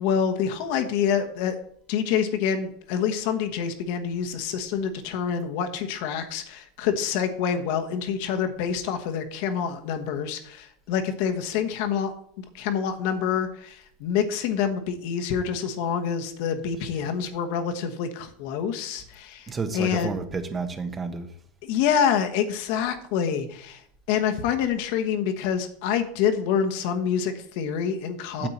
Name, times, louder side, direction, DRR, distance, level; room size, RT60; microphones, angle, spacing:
voice 1, 0.0-1.6 1.9-20.1 21.6-23.8 24.1-28.5, left 7 dB, 65° left, 6 dB, 1.2 m, -27 dB
voice 2, 19.5-21.3 28.4-28.5, right 4 dB, 25° right, 8 dB, 1.2 m, -30 dB
8.8 x 7.6 x 4.3 m, 0.63 s
hypercardioid pair, 90°, 0 cm